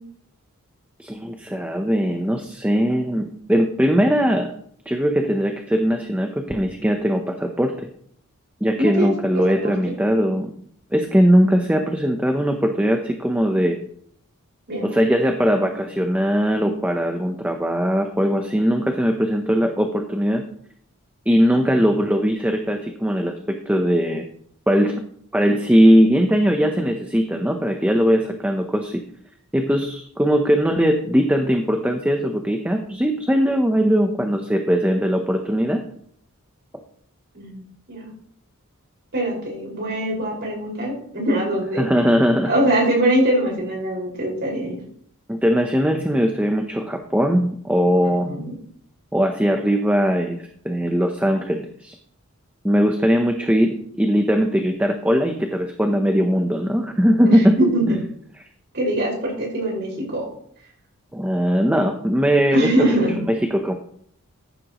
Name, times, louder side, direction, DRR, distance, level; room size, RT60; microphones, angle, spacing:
voice 1, 1.0-4.5 4.9-7.7 8.6-10.5 10.9-13.8 14.8-20.4 21.3-24.2 24.7-24.9 25.3-29.0 29.5-35.8 41.8-42.5 45.3-48.3 49.1-50.4 50.6-51.9 52.6-57.6 61.1-63.0 63.3-63.7, equal, 5° right, 4 dB, 0.8 m, -20 dB
voice 2, 8.8-9.7 14.7-15.0 37.3-38.1 39.1-41.9 42.5-44.8 48.2-48.5 57.3-58.0 58.7-60.3 62.5-63.2, right 1 dB, 50° right, -2 dB, 5.4 m, -23 dB
14.5 x 10.0 x 3.1 m, 0.63 s
head